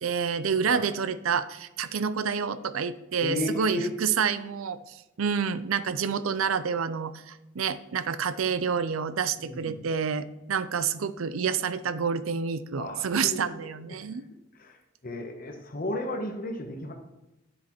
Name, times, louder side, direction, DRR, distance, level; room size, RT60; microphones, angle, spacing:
voice 1, 0.0-4.8 5.2-14.2, right 6 dB, 85° right, 14 dB, 0.5 m, -28 dB
voice 2, 3.2-3.9 9.4-9.9 12.8-13.4 13.7-14.0 14.5-14.8 15.0-16.9, left 1 dB, 45° left, 2 dB, 0.9 m, -34 dB
9.7 x 7.3 x 3.0 m, 0.93 s
head